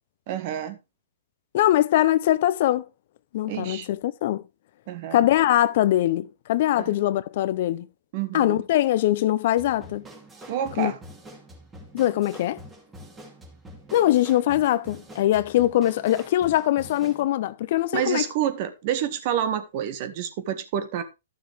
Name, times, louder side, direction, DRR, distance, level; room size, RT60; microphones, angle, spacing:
voice 1, 0.3-0.8 3.5-3.9 4.9-5.2 6.7-6.9 8.1-8.6 10.5-11.0 17.9-21.0, right 10 dB, 45° right, 1.6 m, -28 dB
voice 2, 1.5-2.9 3.3-4.4 5.1-7.9 8.3-10.0 10.8-10.9 11.9-12.6 13.9-18.2, left 13 dB, 55° left, 0.6 m, -22 dB
sound 1, 9.6-17.3, equal, 15° right, 2.6 m, -45 dB
12.5 x 6.7 x 3.4 m
hypercardioid pair, 125°, 0 cm